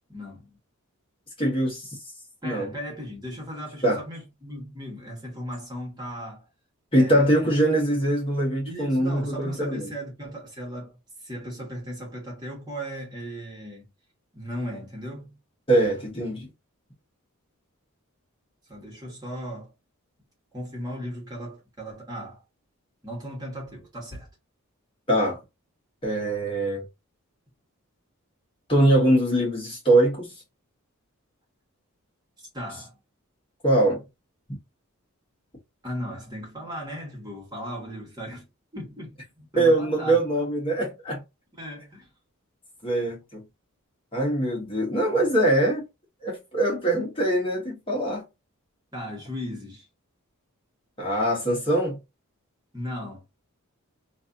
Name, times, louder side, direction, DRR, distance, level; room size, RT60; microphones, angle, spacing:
voice 1, 0.1-0.6 2.4-6.4 6.9-7.3 8.6-13.9 14.3-15.4 18.7-19.7 20.5-22.4 23.0-24.3 32.4-33.0 35.8-38.5 38.7-40.2 41.6-42.1 48.9-49.9 52.7-53.2, equal, 20° right, 1.6 m, -37 dB
voice 2, 1.4-1.9 2.4-2.7 3.8-4.0 6.9-9.8 15.7-16.5 25.1-25.4 26.0-26.8 28.7-30.3 33.6-34.0 39.6-41.2 42.8-43.4 44.1-45.8 46.2-48.2 51.0-52.0, right 1 dB, 25° left, 1.2 m, -22 dB
3.2 x 2.6 x 2.6 m
head